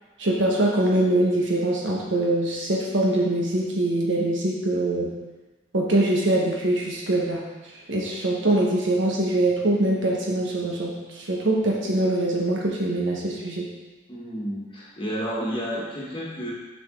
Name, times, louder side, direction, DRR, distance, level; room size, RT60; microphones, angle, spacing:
voice 1, 0.2-5.1 5.7-7.4 7.9-13.7, right 1 dB, 70° right, -3 dB, 1.3 m, -23 dB
voice 2, 14.1-16.5, equal, 25° left, -5 dB, 1.5 m, -31 dB
7.0 x 5.3 x 3.8 m, 1.2 s
head